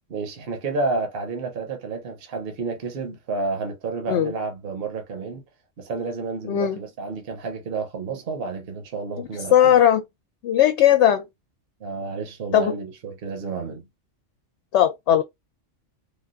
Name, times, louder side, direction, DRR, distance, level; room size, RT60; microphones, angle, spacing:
voice 1, 0.1-5.4 5.8-9.8 11.8-13.9, right 4 dB, 55° right, 1.0 m, -30 dB
voice 2, 6.5-6.8 9.2-10.0 10.4-11.2 12.5-12.8 14.7-15.2, left 10 dB, 75° left, 0.8 m, -18 dB
3.6 x 2.3 x 2.4 m
omnidirectional pair, 1.2 m